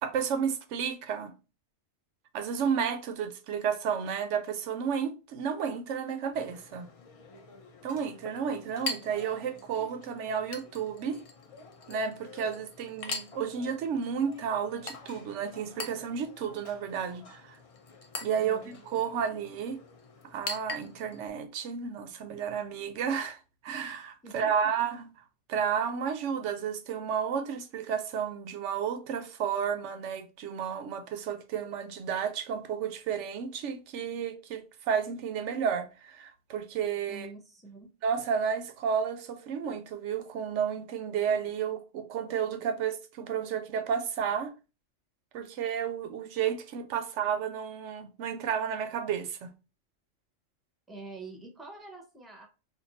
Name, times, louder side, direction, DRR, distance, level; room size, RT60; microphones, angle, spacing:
voice 1, 0.0-1.3 2.3-6.9 7.8-11.2 11.9-17.6 18.2-19.8 20.3-23.4 23.6-25.1 25.5-37.3 38.0-44.5 45.3-49.5, right 7 dB, 85° right, 0.9 m, -32 dB
Chink clink, 6.3-21.3, left 3 dB, 50° left, 0.4 m, -44 dB
voice 2, 18.4-18.7 24.2-24.7 37.1-37.9 50.9-52.5, right 3 dB, ahead, 0.6 m, -46 dB
2.6 x 2.5 x 3.9 m
omnidirectional pair, 1.2 m